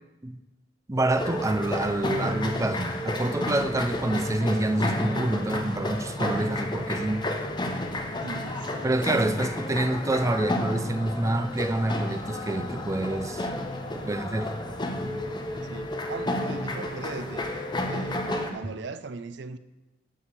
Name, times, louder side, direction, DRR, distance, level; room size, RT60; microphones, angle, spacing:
voice 1, 0.9-7.3 8.8-13.5 13.9-14.5, right 1 dB, 15° right, 0.5 m, -27 dB
sound 1, 1.1-18.5, left 1 dB, 25° left, 0.8 m, -31 dB
voice 2, 8.2-9.0 13.8-14.2 15.7-19.6, right 4 dB, 65° right, 0.5 m, -39 dB
10.0 x 4.9 x 6.7 m
head